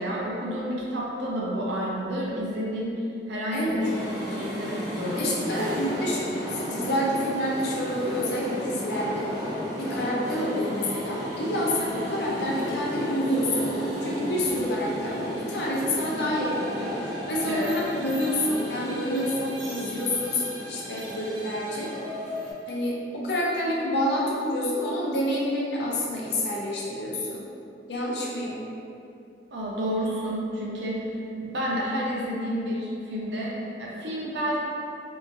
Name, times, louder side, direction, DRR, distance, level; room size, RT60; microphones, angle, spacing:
voice 1, 0.0-4.0 4.3-5.6 17.5-17.7 29.5-31.0 31.4-34.6, equal, 70° right, -4 dB, 0.5 m, -30 dB
voice 2, 3.5-3.8 5.2-9.3 9.7-13.7 14.0-21.9 22.7-27.4 27.9-28.6, left 1 dB, 65° left, -4 dB, 0.5 m, -28 dB
sound 1, 3.8-22.5, equal, 25° right, 0.7 m, -33 dB
2.8 x 2.4 x 2.5 m, 2.7 s
head